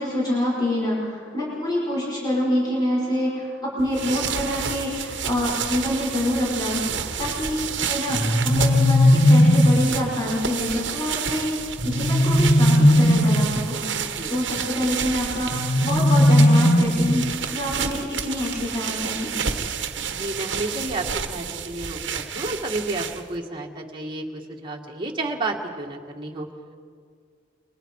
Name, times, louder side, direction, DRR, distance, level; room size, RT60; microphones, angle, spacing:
voice 1, 0.0-19.3, left 1 dB, 25° left, -6 dB, 6.1 m, -26 dB
sound 1, 3.8-23.4, right 7 dB, 70° right, 1.3 m, -30 dB
sound 2, 8.1-9.9 11.8-13.7 15.5-17.4, left 1 dB, 45° left, 1.4 m, -17 dB
voice 2, 20.1-26.5, right 2 dB, 25° right, -1 dB, 2.2 m, -31 dB
29.5 x 23.5 x 5.0 m, 2.1 s
head